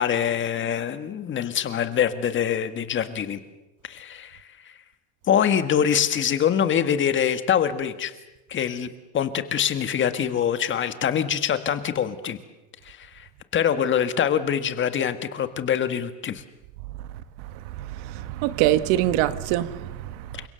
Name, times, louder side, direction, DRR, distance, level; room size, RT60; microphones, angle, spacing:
voice 1, 0.0-3.4 3.8-4.7 5.3-8.1 8.5-12.4 12.8-16.4 20.3-20.4, left 8 dB, 25° left, 1.7 m, -24 dB
voice 2, 17.8-20.1, right 13 dB, 70° right, 1.6 m, -24 dB
29.5 x 25.5 x 7.0 m
cardioid pair, 160°, 42 cm